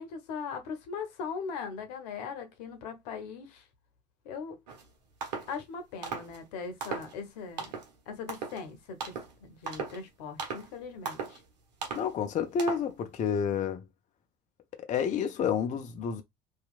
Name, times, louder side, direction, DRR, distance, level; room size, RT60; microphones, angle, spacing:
voice 1, 0.0-3.6 4.2-4.6 5.5-7.7 8.1-9.1 9.4-11.4, left 5 dB, 70° left, 0.8 m, -40 dB
sound 1, 4.7-4.8 5.2-5.5 6.0-6.4 6.8-7.2 7.6-7.9 8.3-8.6 9.0-9.3 9.7-10.0 10.4-10.7 11.0-11.4 11.8-12.1 12.6-12.9, right 5 dB, 80° right, 0.8 m, -37 dB
voice 2, 11.9-13.8 14.9-16.2, left 7 dB, 35° left, 0.5 m, -29 dB
2.8 x 2.4 x 2.4 m
hypercardioid pair, 65°, 21 cm